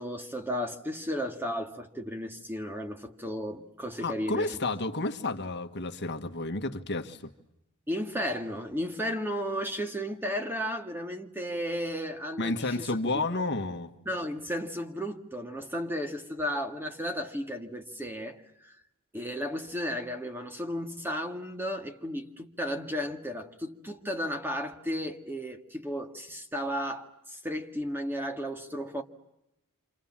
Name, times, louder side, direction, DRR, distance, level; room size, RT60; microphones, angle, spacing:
voice 1, 0.0-4.5 7.9-13.0 14.1-18.7 19.1-29.0, equal, 10° right, 1.9 m, -34 dB
voice 2, 4.0-7.3 12.4-13.9, left 2 dB, 50° left, 1.6 m, -31 dB
29.0 x 27.0 x 7.4 m
head